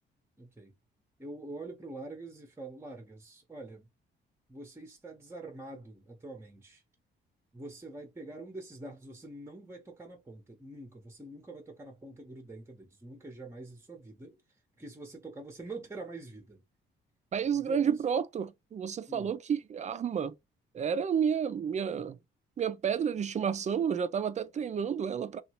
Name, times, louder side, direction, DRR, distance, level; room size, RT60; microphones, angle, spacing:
voice 1, 0.4-0.7 1.2-3.9 4.5-6.8 7.5-14.4 14.8-16.6 17.5-18.0 19.1-19.3, right 2 dB, 15° right, 0.8 m, -45 dB
voice 2, 17.3-20.3 20.7-22.2 22.6-25.4, right 7 dB, 35° right, 0.4 m, -30 dB
2.9 x 2.4 x 2.9 m
cardioid pair, 90°, 20 cm